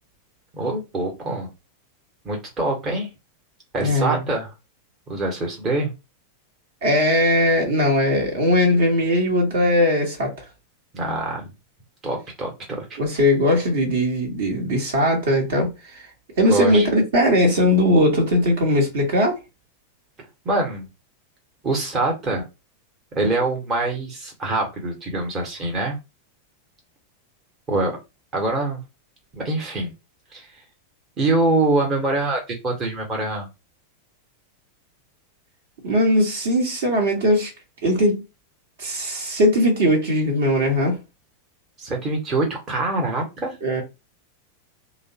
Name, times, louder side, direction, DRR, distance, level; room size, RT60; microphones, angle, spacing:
voice 1, 0.5-1.5 2.2-3.1 3.7-4.5 5.1-5.9 10.9-11.5 12.0-13.2 16.5-16.9 20.4-20.9 21.6-22.4 23.1-26.0 27.7-27.9 28.3-28.8 29.3-29.9 30.3-30.5 31.2-33.5 41.8-43.6, right 2 dB, 25° right, 1.0 m, -24 dB
voice 2, 3.8-4.2 6.8-10.3 13.0-16.1 16.4-19.3 35.8-37.5 37.8-38.2 38.8-41.0 43.6-43.8, left 1 dB, 55° right, 1.1 m, -19 dB
3.3 x 2.1 x 2.8 m
figure-of-eight pair, 90°, 0 cm